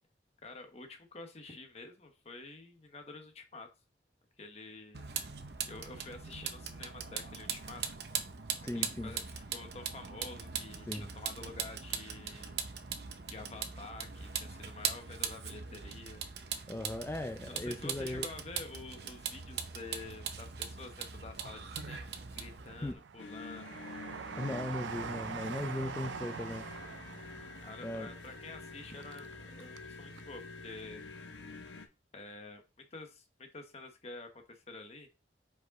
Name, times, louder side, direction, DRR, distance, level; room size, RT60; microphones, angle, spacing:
voice 1, 0.4-3.7 4.4-5.1 5.6-7.8 8.7-12.6 13.3-16.2 17.5-22.1 22.3-23.8 27.6-31.0 32.1-35.1, left 3 dB, 35° left, 1.0 m, -49 dB
Vehicle, 4.9-22.9, right 7 dB, 65° right, 0.7 m, -40 dB
voice 2, 8.6-9.1 10.9-11.1 16.7-18.3 22.8-23.0 24.4-26.7 27.8-28.1, left 1 dB, 15° left, 0.4 m, -38 dB
Train, 18.0-19.2 19.7-20.6 21.1-29.9 30.2-30.3, right 6 dB, 90° right, 0.4 m, -45 dB
sound 1, 23.2-31.9, left 3 dB, 85° left, 1.0 m, -48 dB
5.1 x 4.9 x 4.0 m
head